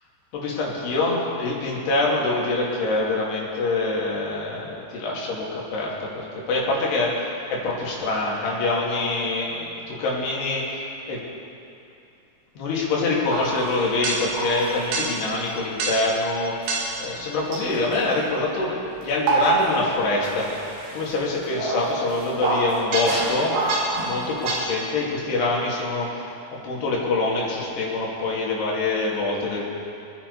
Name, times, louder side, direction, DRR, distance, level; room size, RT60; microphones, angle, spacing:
voice 1, 0.3-11.2 12.6-16.7 17.0-20.6 20.9-23.6 24.0-26.3 26.6-29.6, left 2 dB, 85° left, -4 dB, 4.6 m, -25 dB
sound 1, 13.3-15.3 15.8-16.2 16.7-17.0 17.5-18.3 19.0-20.0 20.2-24.6, right 3 dB, 75° right, 3.8 m, -27 dB
26.0 x 10.5 x 4.2 m, 2.8 s
omnidirectional pair, 4.7 m